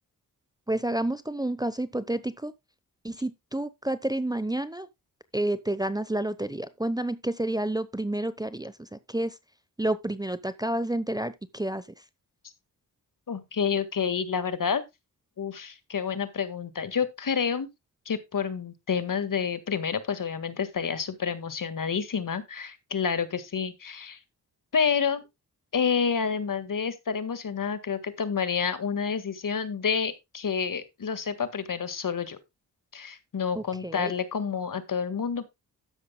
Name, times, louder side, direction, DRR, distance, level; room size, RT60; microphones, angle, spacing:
voice 1, 0.7-2.5 3.0-4.9 5.3-9.3 9.8-11.8 33.5-34.1, right 1 dB, 10° right, 0.8 m, -30 dB
voice 2, 13.3-14.8 15.4-17.7 18.1-24.2 24.7-25.3 25.7-32.4 32.9-35.5, left 6 dB, 55° left, 1.7 m, -29 dB
12.5 x 9.9 x 2.2 m
cardioid pair, 55°, 40 cm